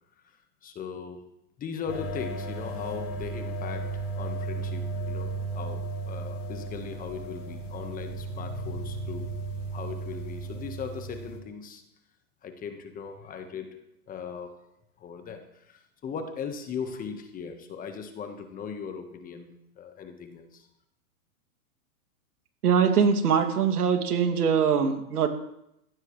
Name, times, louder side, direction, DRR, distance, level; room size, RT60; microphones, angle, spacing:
voice 1, 0.2-1.3 1.6-9.4 9.7-11.8 12.4-14.6 15.0-20.7, left 6 dB, 20° left, 7 dB, 1.4 m, -39 dB
sound 1, 1.9-11.4, right 2 dB, 75° left, 4.7 m, -35 dB
voice 2, 22.6-25.3, right 6 dB, 85° right, 5 dB, 2.6 m, -22 dB
18.5 x 15.5 x 3.2 m, 0.80 s
hypercardioid pair, 140°, 44 cm